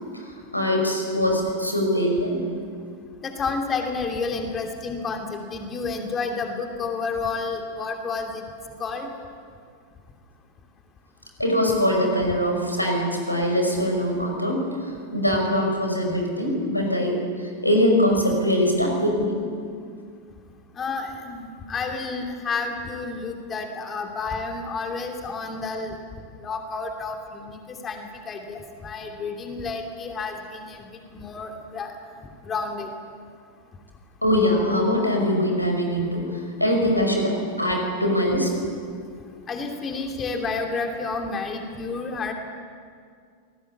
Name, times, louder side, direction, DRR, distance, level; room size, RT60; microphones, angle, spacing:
voice 1, 0.1-2.4 11.4-17.2 17.6-19.4 34.2-38.5, equal, 85° left, 2 dB, 5.6 m, -22 dB
voice 2, 3.2-8.4 8.8-9.1 20.8-26.0 26.4-31.9 32.4-32.9 39.5-42.3, left 4 dB, 25° left, 3 dB, 2.8 m, -30 dB
27.5 x 18.5 x 8.5 m, 2.2 s
figure-of-eight pair, 90°, 0 cm